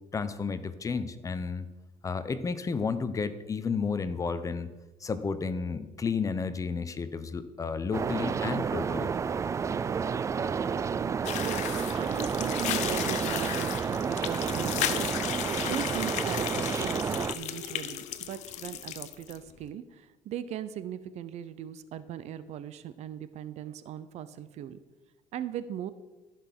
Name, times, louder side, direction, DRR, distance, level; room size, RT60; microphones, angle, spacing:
voice 1, 0.1-1.7 2.0-4.7 5.0-9.1, left 5 dB, 25° left, 13 dB, 0.8 m, -32 dB
sound 1, 7.9-17.3, right 6 dB, 25° right, 0.3 m, -30 dB
voice 2, 10.7-24.8 25.3-25.9, right 10 dB, 65° right, 14 dB, 0.7 m, -39 dB
sound 2, 11.2-19.4, left 11 dB, 70° left, 0.8 m, -35 dB
Brass instrument, 11.2-15.5, left 7 dB, 40° left, 3.6 m, -52 dB
14.0 x 6.0 x 6.1 m, 1.1 s
cardioid pair, 115°, 12 cm